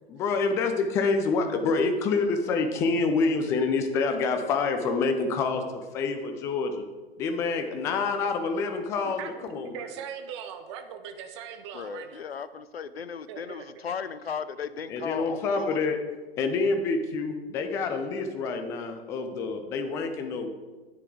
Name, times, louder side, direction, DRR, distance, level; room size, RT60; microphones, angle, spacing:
voice 1, 0.1-6.8 7.2-9.8 14.9-16.0 16.4-20.5, left 4 dB, 10° left, 6 dB, 0.4 m, -27 dB
voice 2, 9.0-12.2 13.3-13.8, right 8 dB, 30° right, 7 dB, 0.8 m, -40 dB
voice 3, 11.7-16.0, left 7 dB, 75° left, 14 dB, 0.6 m, -36 dB
10.0 x 8.2 x 3.8 m, 1.2 s
figure-of-eight pair, 120°, 31 cm